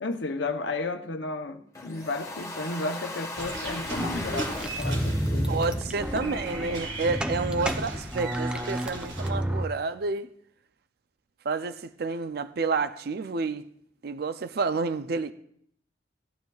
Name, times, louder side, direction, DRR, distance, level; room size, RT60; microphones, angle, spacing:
voice 1, 0.0-5.9, left 3 dB, 80° left, 0.8 m, -33 dB
Domestic sounds home sounds, 1.7-6.7, left 2 dB, 15° left, 1.4 m, -39 dB
sound 1, 3.4-9.3, right 2 dB, 90° right, 1.8 m, -38 dB
sound 2, 3.9-9.7, equal, 5° right, 0.5 m, -31 dB
voice 2, 5.5-10.3 11.4-13.6 14.0-15.3, right 4 dB, 55° right, 0.5 m, -29 dB
17.0 x 11.5 x 2.4 m
head